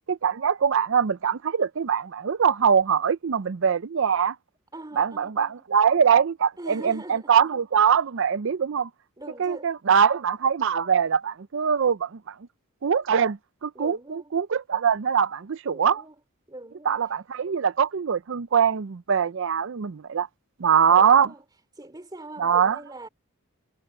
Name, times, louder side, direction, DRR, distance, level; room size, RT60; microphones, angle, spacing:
voice 1, 0.1-4.4 5.0-8.9 9.4-12.3 12.8-16.0 16.9-20.3 20.6-21.3 22.4-22.8, right 7 dB, 60° right, 0.5 m, -22 dB
voice 2, 4.7-5.6 6.6-7.5 9.2-9.7 13.7-14.3 15.7-16.2 16.5-17.2 20.9-21.4 21.7-23.1, right 1 dB, 20° right, 2.9 m, -42 dB
head